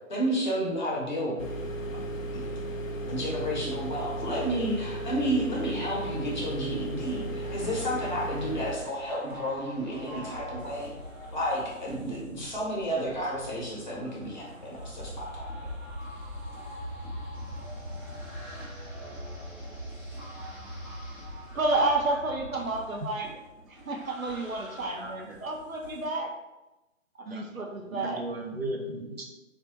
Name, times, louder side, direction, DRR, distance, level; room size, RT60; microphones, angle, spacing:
voice 1, 0.1-1.5 2.3-2.4 3.1-10.9 11.3-15.5, equal, 35° left, -4 dB, 0.9 m, -31 dB
sound 1, 1.4-8.8, right 1 dB, 75° left, 0.6 m, -35 dB
sound 2, 6.7-26.0, equal, 15° right, 0.9 m, -43 dB
voice 2, 21.5-23.3 23.6-26.3 27.3-28.2, right 2 dB, 80° right, 1 dB, 0.8 m, -30 dB
voice 3, 25.0-25.4 27.3-27.4 27.9-29.3, right 1 dB, 50° right, 1 dB, 0.5 m, -36 dB
3.5 x 2.4 x 2.9 m, 1.0 s
figure-of-eight pair, 140°, 40 cm